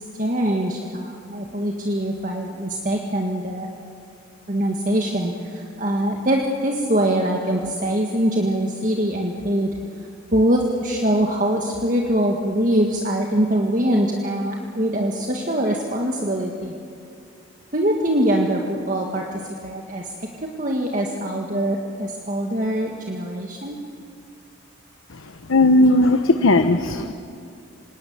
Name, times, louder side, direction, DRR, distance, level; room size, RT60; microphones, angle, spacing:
voice 1, 0.2-3.7 4.5-9.8 10.3-16.8 17.7-20.1 20.4-23.8, right 1 dB, 40° right, 1 dB, 1.8 m, -23 dB
voice 2, 25.5-27.1, left 2 dB, 85° left, 8 dB, 1.0 m, -16 dB
26.5 x 19.5 x 9.6 m, 2.4 s
head